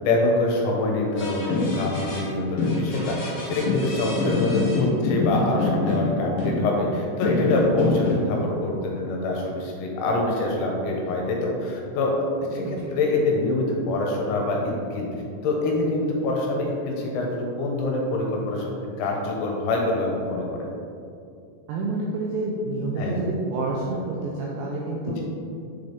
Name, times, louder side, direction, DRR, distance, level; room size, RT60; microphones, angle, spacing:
voice 1, 0.0-12.1 12.5-15.1 15.4-18.7 19.0-20.7 23.0-23.3 25.2-25.3, left 2 dB, 80° left, -1 dB, 2.9 m, -25 dB
sound 1, 1.2-2.2 2.6-6.9 7.2-8.4, left 3 dB, 60° left, 2.8 m, -25 dB
voice 2, 21.7-25.2, right 2 dB, 85° right, -3 dB, 2.5 m, -28 dB
7.3 x 3.9 x 3.4 m, 2.5 s
omnidirectional pair, 5.6 m